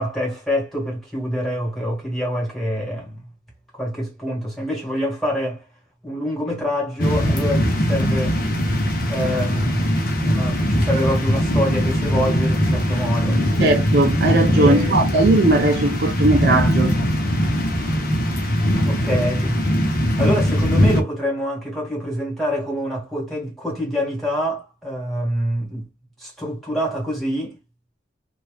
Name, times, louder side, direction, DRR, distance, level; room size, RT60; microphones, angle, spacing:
voice 1, 0.0-3.2 3.7-5.6 6.0-8.4 9.1-9.9 10.2-13.5 14.5-15.0 18.8-19.7 20.2-25.9 26.2-27.6, equal, ahead, 1.5 m, -26 dB
sound 1, 7.0-21.0, equal, 50° left, 0.8 m, -20 dB
voice 2, 13.6-17.0, right 2 dB, 55° right, 0.6 m, -18 dB
2.8 x 2.4 x 3.3 m
head